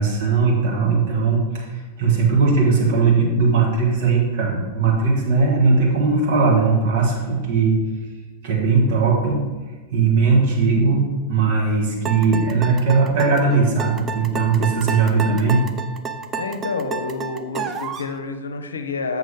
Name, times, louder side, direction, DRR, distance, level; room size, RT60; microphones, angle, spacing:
voice 1, 0.0-1.6 2.0-7.8 8.4-9.4 9.9-11.0 11.3-15.6, right 4 dB, 55° right, -3 dB, 1.7 m, -18 dB
sound 1, 12.0-18.1, right 6 dB, 25° right, 0.5 m, -30 dB
voice 2, 16.4-19.2, left 4 dB, 70° left, 7 dB, 0.6 m, -28 dB
7.3 x 5.9 x 3.6 m, 1.4 s
figure-of-eight pair, 90°, 0 cm